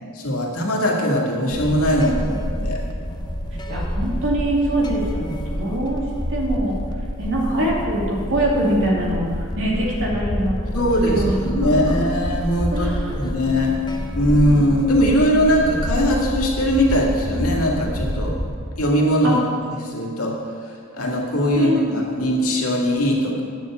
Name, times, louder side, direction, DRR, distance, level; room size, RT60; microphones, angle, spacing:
voice 1, 0.1-2.8 5.6-5.7 10.7-13.7 14.1-18.4 18.8-19.4 19.8-20.4 20.9-23.4, equal, 85° left, -2 dB, 2.1 m, -20 dB
sound 1, 1.5-18.8, equal, 20° left, 0.8 m, -28 dB
voice 2, 3.7-6.0 6.3-6.8 7.2-9.3 9.6-12.2 12.7-13.1 19.2-19.4 21.5-21.9, right 1 dB, 65° right, -3 dB, 2.6 m, -23 dB
9.2 x 7.2 x 7.5 m, 2.2 s
head